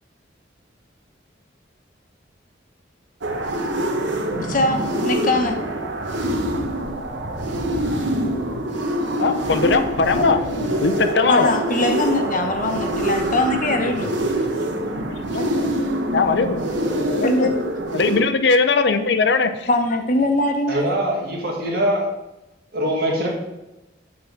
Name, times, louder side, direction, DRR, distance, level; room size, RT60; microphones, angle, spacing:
sound 1, 3.2-18.2, right 1 dB, 80° right, 1.0 m, -25 dB
voice 1, 4.4-5.6 11.3-14.1 15.3-15.6 17.2-17.6 19.7-20.8, left 2 dB, 45° left, 4 dB, 1.0 m, -21 dB
voice 2, 9.2-10.4 10.8-11.5 15.1-15.3 16.1-17.5 17.9-19.7, left 4 dB, 65° left, 8 dB, 0.6 m, -20 dB
voice 3, 20.7-22.1 22.7-23.3, right 1 dB, 55° right, -2 dB, 2.3 m, -22 dB
8.8 x 3.9 x 6.0 m, 0.97 s
head